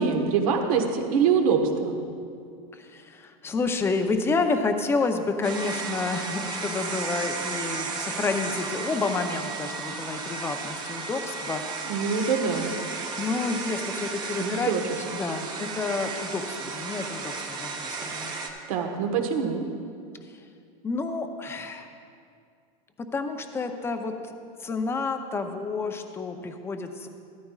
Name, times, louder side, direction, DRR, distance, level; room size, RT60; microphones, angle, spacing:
voice 1, 0.0-2.0 11.9-12.7 14.4-14.8 18.7-19.6, right 6 dB, 70° right, 3 dB, 1.3 m, -24 dB
voice 2, 2.7-11.6 12.0-12.1 13.2-14.7 15.1-18.3 20.8-21.9 23.1-24.3 24.6-27.1, left 4 dB, 15° left, 6 dB, 0.6 m, -29 dB
sound 1, 5.4-18.5, right 4 dB, 20° right, 0.9 m, -34 dB
14.0 x 13.5 x 2.4 m, 2.3 s
supercardioid pair, 145°, 19 cm